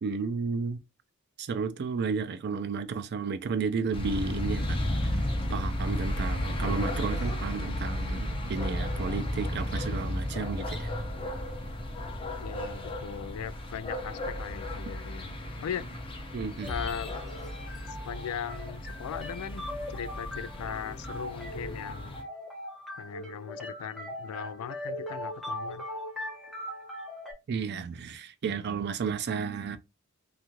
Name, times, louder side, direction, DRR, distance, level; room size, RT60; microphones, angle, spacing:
voice 1, 0.0-0.8 1.4-5.2 5.5-10.9 16.3-16.8 27.5-29.8, right 5 dB, 50° right, 0.4 m, -32 dB
sound 1, 3.9-22.2, left 1 dB, 25° left, 0.6 m, -34 dB
voice 2, 12.4-15.9 16.7-17.1 17.9-22.2 23.0-25.8, left 8 dB, 90° left, 0.3 m, -39 dB
sound 2, 16.6-27.3, left 1 dB, ahead, 1.0 m, -40 dB
2.6 x 2.4 x 2.9 m
head